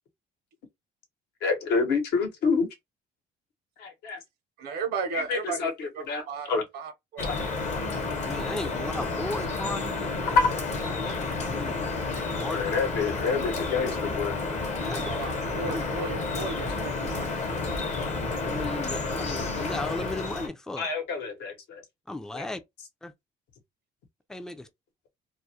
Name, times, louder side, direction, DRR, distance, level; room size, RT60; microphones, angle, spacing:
voice 1, 1.4-2.7 3.8-4.2 5.1-6.6 7.2-7.3 10.3-10.5 12.5-14.3 16.6-16.7 20.8-21.8 22.3-22.4, left 4 dB, 75° left, 0.9 m, -27 dB
voice 2, 4.6-7.2 14.9-17.5, right 5 dB, 70° right, 0.7 m, -35 dB
Drip, 7.2-20.5, left 3 dB, 45° left, 0.7 m, -31 dB
voice 3, 8.2-10.4 10.8-12.7 14.8-15.1 15.7-15.8 18.4-20.9 22.1-22.6 23.0-23.1 24.3-24.7, left 2 dB, 5° left, 0.3 m, -36 dB
2.3 x 2.0 x 2.7 m
cardioid pair, 110°, 17 cm